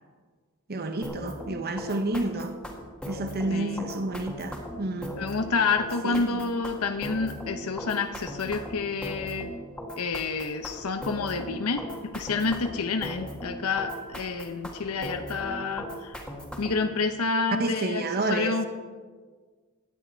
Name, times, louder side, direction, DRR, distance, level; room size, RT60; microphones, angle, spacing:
voice 1, 0.7-2.6 3.0-5.2 6.0-6.4 17.6-18.6, right 2 dB, 45° right, 1.0 m, -30 dB
sound 1, 1.0-16.9, equal, 5° left, 1.8 m, -38 dB
voice 2, 3.5-3.8 5.2-9.5 10.0-16.2 16.6-18.6, left 4 dB, 75° left, 0.8 m, -29 dB
16.0 x 11.0 x 4.4 m
head